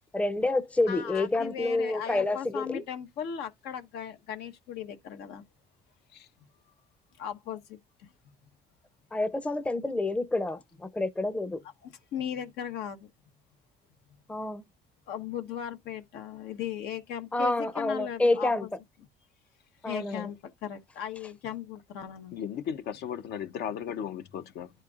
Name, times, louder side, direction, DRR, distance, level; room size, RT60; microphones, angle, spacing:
voice 1, 0.1-2.8 9.1-11.6 14.3-14.6 17.3-18.7 19.8-20.3, left 2 dB, 5° left, 0.5 m, -28 dB
voice 2, 0.9-5.4 7.2-8.1 11.8-13.1 15.1-18.7 19.8-22.4, left 9 dB, 90° left, 1.2 m, -37 dB
voice 3, 22.3-24.7, left 8 dB, 75° left, 0.9 m, -36 dB
11.0 x 4.4 x 2.4 m
cardioid pair, 110°, 17 cm